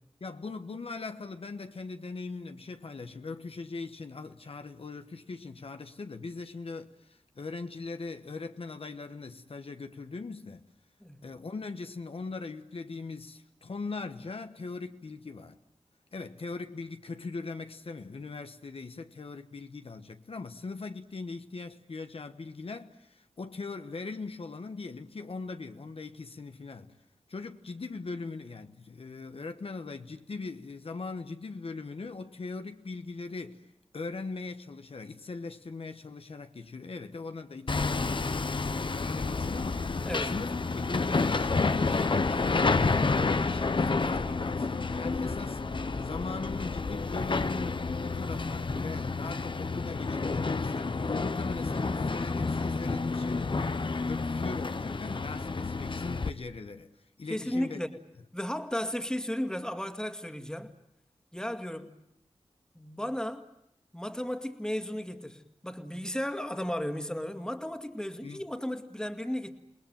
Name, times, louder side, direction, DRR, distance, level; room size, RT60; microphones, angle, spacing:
voice 1, 0.2-10.6 11.2-15.6 16.1-26.9 27.3-33.7 33.9-42.8 43.1-45.6 46.0-56.9 57.2-57.8 68.2-68.4, left 3 dB, 65° left, 1.2 m, -40 dB
Hammer, 37.7-56.3, left 3 dB, 50° left, 1.0 m, -30 dB
voice 2, 57.3-57.9 58.3-60.7 61.3-61.9 62.8-63.5 63.9-69.5, equal, 5° left, 2.2 m, -34 dB
28.5 x 19.5 x 9.1 m
wide cardioid pair, 60°, 10 cm